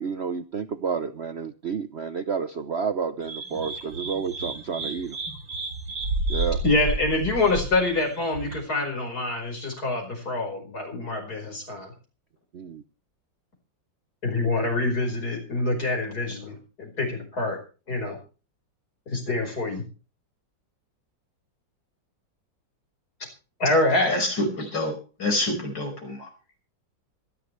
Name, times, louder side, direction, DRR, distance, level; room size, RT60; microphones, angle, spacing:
voice 1, 0.0-5.2 6.3-6.6 12.5-12.8, right 6 dB, 55° right, 10 dB, 0.8 m, -30 dB
sound 1, 3.2-8.6, right 2 dB, 85° right, 4.6 m, -31 dB
voice 2, 6.6-11.9 14.2-17.6 17.9-18.2 19.1-19.8 23.6-24.2, left 2 dB, 55° left, 2 dB, 5.4 m, -26 dB
voice 3, 24.1-24.9 25.2-26.2, left 1 dB, 70° left, 4 dB, 5.8 m, -27 dB
25.5 x 11.0 x 3.2 m, 0.36 s
omnidirectional pair, 2.0 m